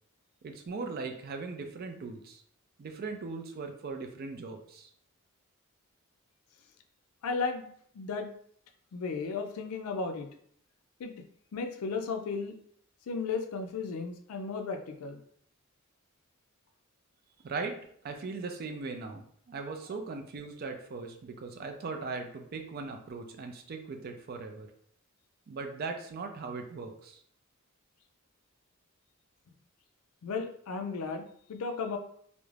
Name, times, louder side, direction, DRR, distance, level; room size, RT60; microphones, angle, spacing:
voice 1, 0.4-2.4 2.8-4.9 17.4-17.8 18.0-24.7 25.5-27.2, right 4 dB, 45° right, 4 dB, 0.3 m, -39 dB
voice 2, 7.2-7.7 7.9-8.3 8.9-10.3 11.0-11.1 11.5-12.5 13.1-15.2 30.2-32.0, left 4 dB, 85° left, 6 dB, 0.4 m, -34 dB
2.4 x 2.1 x 3.1 m, 0.63 s
head